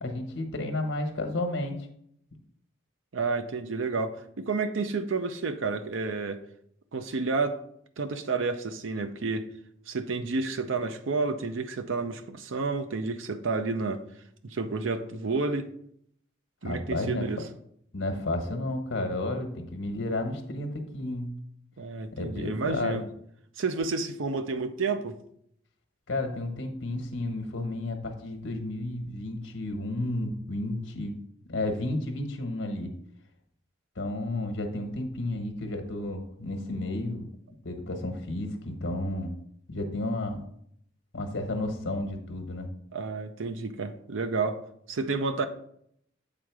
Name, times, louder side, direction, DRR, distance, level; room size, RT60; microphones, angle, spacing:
voice 1, 0.0-1.7 16.6-17.2 17.9-21.4 22.2-23.1 26.1-31.2 31.5-32.9 34.0-37.3 37.6-39.3 39.7-40.4 41.1-42.7, left 2 dB, 85° left, 1.1 m, -32 dB
voice 2, 3.1-6.4 6.9-7.6 8.0-9.5 9.9-14.0 14.4-15.7 16.6-17.4 21.8-23.0 23.6-25.2 42.9-44.6 44.9-45.5, right 4 dB, 90° right, 0.6 m, -30 dB
7.6 x 3.7 x 4.7 m
head